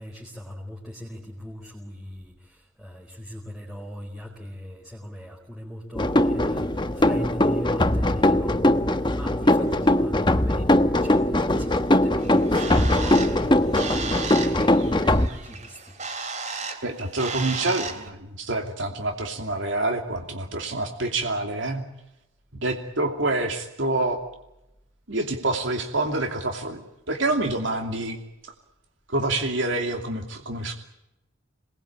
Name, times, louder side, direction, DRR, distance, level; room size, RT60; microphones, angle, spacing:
voice 1, 0.0-8.6 9.1-15.9, equal, ahead, -3 dB, 4.5 m, -39 dB
sound 1, 5.9-15.3, left 1 dB, 20° left, 1.0 m, -21 dB
Bird, 12.2-18.1, right 4 dB, 35° right, 3.0 m, -34 dB
voice 2, 16.8-21.8 22.6-24.2 25.1-28.2 29.1-30.7, right 2 dB, 70° right, 3 dB, 2.8 m, -27 dB
27.5 x 20.0 x 8.8 m, 0.88 s
head